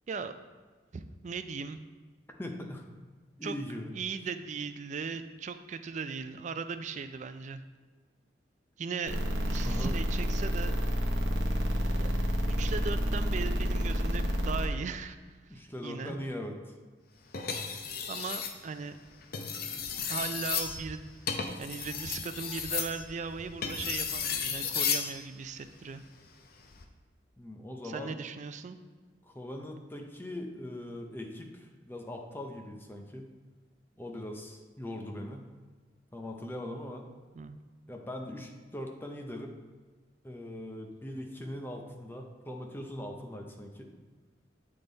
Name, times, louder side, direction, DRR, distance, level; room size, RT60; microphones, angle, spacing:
voice 1, 0.9-1.8 3.4-3.5 3.9-7.6 8.8-9.2 9.5-10.8 12.0-12.1 12.4-16.2 18.1-19.0 20.1-21.1 21.6-26.0 27.8-28.8 37.3-37.6, right 5 dB, 40° right, 10 dB, 0.4 m, -38 dB
voice 2, 2.4-2.8 3.4-3.9 9.6-9.9 15.5-16.6 27.4-28.2 29.2-33.3 34.0-35.5 36.1-37.1 37.9-39.6 40.2-43.9, left 1 dB, 10° left, 3 dB, 0.6 m, -40 dB
sound 1, 9.1-14.6, equal, 80° right, 0.8 m, -29 dB
sound 2, 17.3-18.6 19.2-25.1 26.6-26.8, left 6 dB, 55° left, 0.6 m, -34 dB
7.8 x 3.7 x 3.9 m, 1.4 s
head